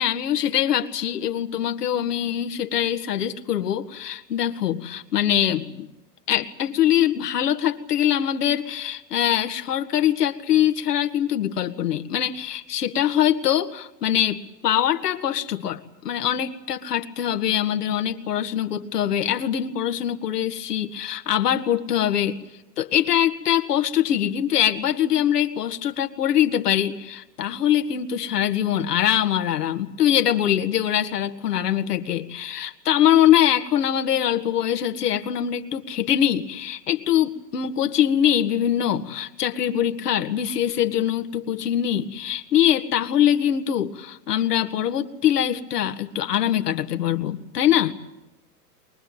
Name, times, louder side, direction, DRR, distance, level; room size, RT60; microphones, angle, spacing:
voice 1, 0.0-5.9 6.3-22.4 22.8-47.9, left 10 dB, 75° left, 7 dB, 2.0 m, -23 dB
23.5 x 21.5 x 9.1 m, 0.92 s
hypercardioid pair, 105°, 48 cm